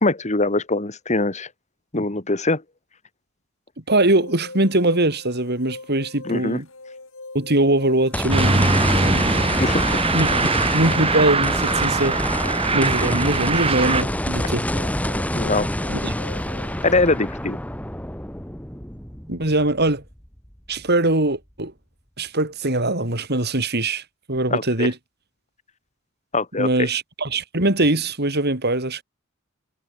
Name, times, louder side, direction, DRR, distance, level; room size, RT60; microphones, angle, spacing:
voice 1, 0.0-1.5 1.9-2.6 6.2-6.6 9.6-10.0 15.3-15.7 16.8-17.6 24.5-24.9 26.3-26.7, left 2 dB, 35° left, 2.1 m, -22 dB
voice 2, 3.9-6.7 7.3-8.8 10.1-12.2 12.7-14.7 16.0-16.1 19.3-20.0 20.7-21.7 22.2-24.0 24.3-24.9 26.6-29.0, right 2 dB, 55° right, 4.5 m, -22 dB
sound 1, 4.0-17.0, left 2 dB, 65° left, 5.5 m, -41 dB
sound 2, 8.1-20.5 20.9-21.0 24.4-24.5, left 1 dB, 5° left, 2.0 m, -26 dB
sound 3, 8.3-14.0, right 3 dB, 30° right, 2.4 m, -22 dB
head